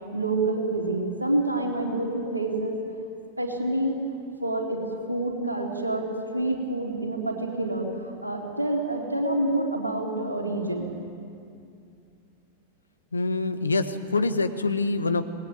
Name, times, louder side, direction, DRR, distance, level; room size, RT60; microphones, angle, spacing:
voice 1, 0.1-2.8 3.4-4.0 4.4-4.8 5.1-6.1 6.3-10.9, right 2 dB, 85° right, 0 dB, 4.0 m, -27 dB
voice 2, 13.1-15.2, left 3 dB, 75° left, 10 dB, 1.4 m, -25 dB
25.5 x 20.5 x 9.2 m, 2.4 s
figure-of-eight pair, 90°, 0 cm